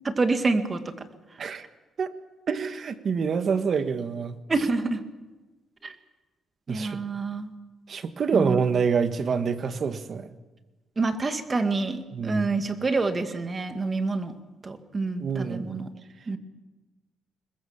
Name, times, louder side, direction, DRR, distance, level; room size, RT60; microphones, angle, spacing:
voice 1, 0.0-0.9 4.5-5.0 5.8-5.9 6.7-7.5 8.3-8.6 11.0-14.3 14.6-15.9 16.3-16.4, right 3 dB, 30° right, 8 dB, 2.1 m, -27 dB
voice 2, 2.5-4.4 6.7-7.0 7.9-10.3 12.1-12.5 15.2-15.7, right 6 dB, 50° right, 10 dB, 1.6 m, -26 dB
22.0 x 21.0 x 7.4 m, 1.2 s
cardioid pair, 90°, 0 cm